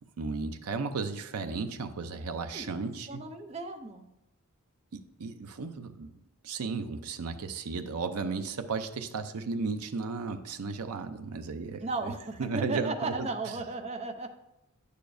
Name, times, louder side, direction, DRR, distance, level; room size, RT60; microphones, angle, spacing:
voice 1, 0.2-3.2 4.9-6.2 6.4-11.9 12.4-13.3, right 4 dB, 85° right, 8 dB, 0.6 m, -34 dB
voice 2, 2.5-4.1 11.8-14.3, right 3 dB, 30° right, 5 dB, 0.5 m, -35 dB
9.3 x 6.7 x 2.6 m, 0.90 s
head